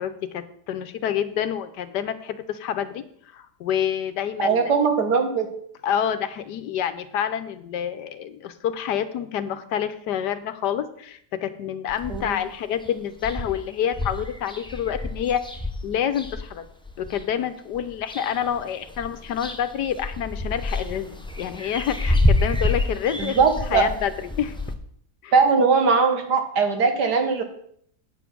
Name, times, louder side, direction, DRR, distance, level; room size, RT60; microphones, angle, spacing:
voice 1, 0.0-3.0 3.3-4.8 5.8-15.4 15.8-16.6 17.0-23.4 23.7-24.1 24.4-24.6 25.2-25.3, left 9 dB, 85° left, 11 dB, 1.4 m, -28 dB
voice 2, 4.4-5.5 12.1-12.4 23.2-23.9 25.3-27.4, right 5 dB, 75° right, 5 dB, 2.1 m, -20 dB
sound 1, 11.9-12.5 12.9-13.0 13.2-17.2 17.7-18.6 18.9-24.7, left 1 dB, 5° left, 0.4 m, -28 dB
8.9 x 7.2 x 6.1 m, 0.66 s
omnidirectional pair, 1.8 m